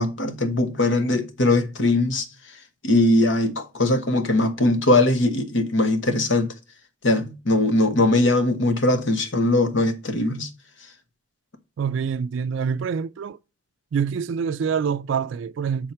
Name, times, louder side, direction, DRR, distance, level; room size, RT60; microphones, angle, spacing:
voice 1, 0.0-2.3 2.8-6.5 7.0-10.5, left 2 dB, 75° left, 1.1 m, -20 dB
voice 2, 11.8-13.4 13.9-15.9, right 6 dB, 75° right, 0.3 m, -26 dB
6.4 x 4.5 x 5.6 m
head